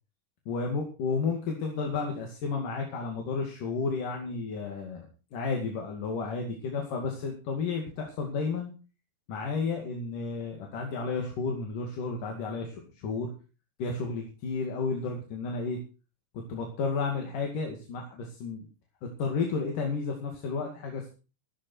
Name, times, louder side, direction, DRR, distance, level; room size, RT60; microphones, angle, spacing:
voice 1, 0.5-8.7 9.3-13.3 13.8-15.8 16.5-18.6 19.2-21.1, left 4 dB, 85° left, 2 dB, 4.0 m, -32 dB
14.0 x 13.5 x 4.6 m, 0.34 s
omnidirectional pair, 3.7 m